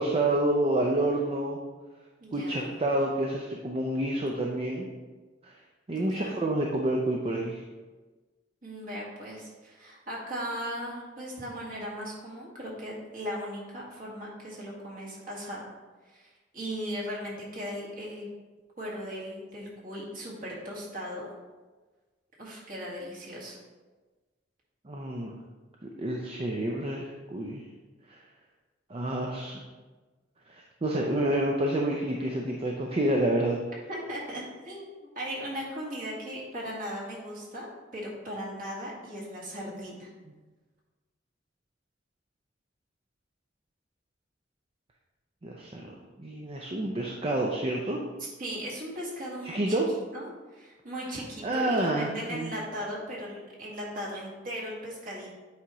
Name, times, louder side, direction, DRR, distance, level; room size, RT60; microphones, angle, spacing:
voice 1, 0.0-1.6 2.3-4.9 5.4-5.5 5.9-7.6 24.8-25.3 25.8-27.6 28.1-28.2 28.9-29.6 30.5-33.6 45.4-48.0 49.4-49.9 51.4-52.5, right 1 dB, 30° right, -1 dB, 0.6 m, -28 dB
voice 2, 2.2-2.7 6.0-6.4 8.6-15.7 16.1-18.3 18.8-21.3 22.4-23.6 33.9-37.7 37.9-40.1 48.2-49.8 50.1-50.3 50.5-55.4, equal, 50° right, -4 dB, 1.9 m, -38 dB
8.4 x 4.8 x 3.0 m, 1.3 s
head